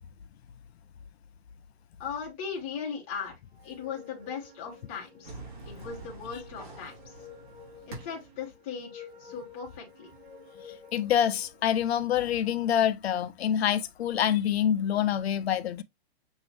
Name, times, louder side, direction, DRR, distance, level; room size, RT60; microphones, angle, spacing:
voice 1, 2.0-3.3 3.6-5.3 5.7-6.9 7.9-10.1, left 6 dB, 10° left, 0.5 m, -38 dB
sound 1, 3.5-11.7, left 5 dB, 65° right, 2.2 m, -51 dB
sound 2, 5.2-8.4, right 2 dB, 50° right, 2.7 m, -45 dB
voice 2, 10.9-15.8, left 10 dB, 75° left, 0.6 m, -26 dB
6.3 x 2.6 x 3.1 m
hypercardioid pair, 180°, 32 cm